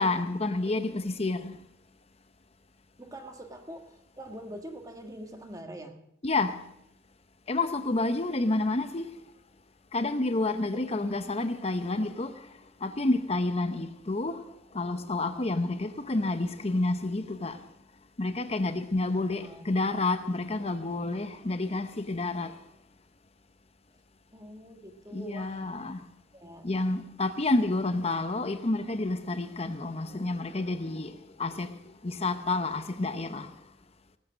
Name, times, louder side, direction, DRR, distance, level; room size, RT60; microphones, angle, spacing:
voice 1, 0.0-1.6 6.2-6.6 7.5-9.1 9.9-12.3 12.8-14.4 14.7-17.6 18.2-22.5 25.1-26.0 26.6-31.7 32.0-33.5, left 2 dB, 35° left, 0.8 m, -29 dB
voice 2, 3.0-6.0 10.7-11.4 19.4-19.7 24.3-25.7 26.3-26.7 27.5-27.7, right 1 dB, 20° right, 1.6 m, -44 dB
18.5 x 8.6 x 6.3 m
head